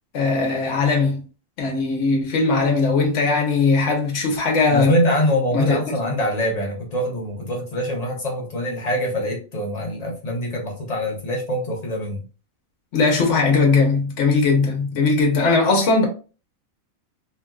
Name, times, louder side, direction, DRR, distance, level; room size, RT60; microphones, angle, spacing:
voice 1, 0.1-1.2 1.6-5.0 5.5-5.8 12.9-16.1, left 4 dB, 65° left, 1.1 m, -19 dB
voice 2, 4.7-12.3, equal, 35° left, 0.9 m, -24 dB
3.1 x 2.5 x 2.2 m
omnidirectional pair, 1.4 m